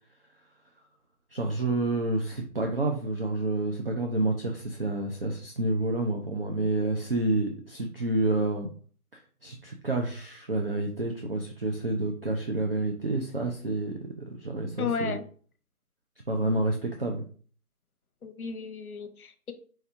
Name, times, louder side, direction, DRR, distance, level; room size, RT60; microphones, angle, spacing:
voice 1, 1.3-8.7 9.1-15.2 16.3-17.2, right 2 dB, 40° right, 2 dB, 0.5 m, -29 dB
voice 2, 14.8-15.2 18.2-19.5, left 5 dB, 70° left, 9 dB, 0.8 m, -33 dB
4.6 x 2.9 x 3.3 m, 0.43 s
figure-of-eight pair, 160°, 45 cm